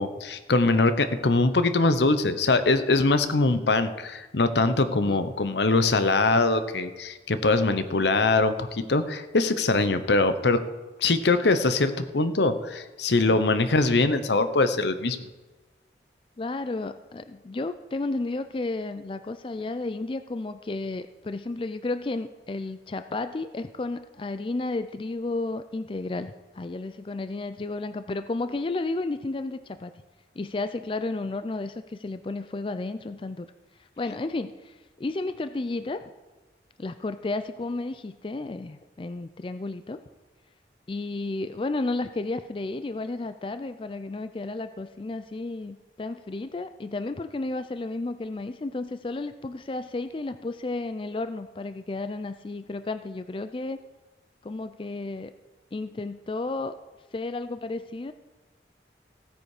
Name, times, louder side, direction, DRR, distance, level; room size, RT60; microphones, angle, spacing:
voice 1, 0.0-10.6 11.0-15.3, left 3 dB, 80° left, 11 dB, 0.8 m, -23 dB
voice 2, 16.4-29.9 30.4-33.5 34.0-36.1 36.8-40.0 40.9-53.8 54.4-55.3 55.7-56.8 57.1-58.1, left 2 dB, 30° left, 10 dB, 0.4 m, -32 dB
16.0 x 9.0 x 4.9 m, 1.2 s
head